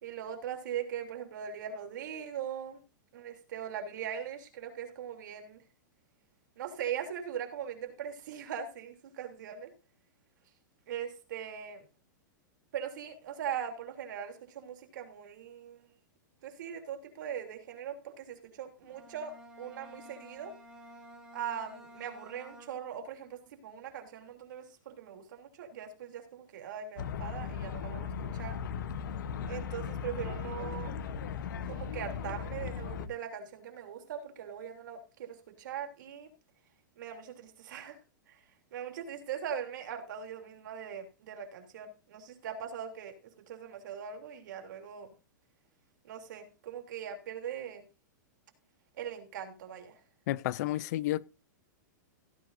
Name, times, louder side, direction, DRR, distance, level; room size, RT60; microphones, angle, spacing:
voice 1, 0.0-2.8 3.1-5.6 6.6-9.7 10.9-11.8 12.7-15.9 16.4-20.5 21.3-28.6 29.5-30.9 31.7-36.3 37.0-38.0 38.7-43.1 43.5-45.1 46.0-47.8 49.0-50.0, right 8 dB, 70° right, 3.2 m, -40 dB
Bowed string instrument, 18.8-23.1, right 1 dB, 5° right, 4.4 m, -52 dB
sound 1, 27.0-33.1, left 6 dB, 75° left, 1.0 m, -37 dB
voice 2, 50.3-51.3, left 15 dB, 55° left, 0.5 m, -31 dB
16.0 x 9.7 x 2.7 m
hypercardioid pair, 145°, 11 cm